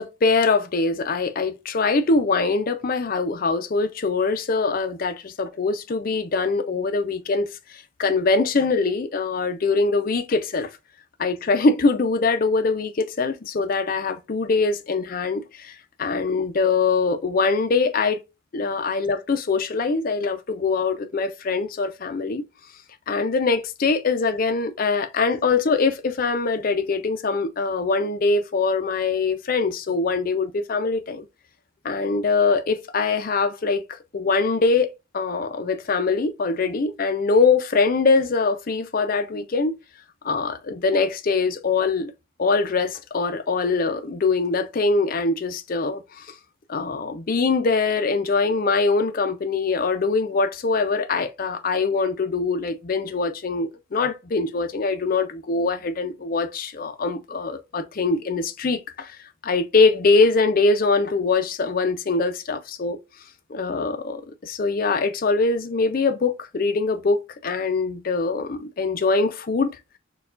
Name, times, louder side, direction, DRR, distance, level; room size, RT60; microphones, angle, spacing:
voice 1, 0.0-10.7 11.2-18.2 18.5-22.4 23.1-31.3 31.8-34.9 35.1-39.7 40.2-42.1 42.4-46.3 46.7-63.0 63.5-69.8, left 4 dB, 45° left, 0.4 m, -23 dB
4.3 x 2.3 x 2.4 m
head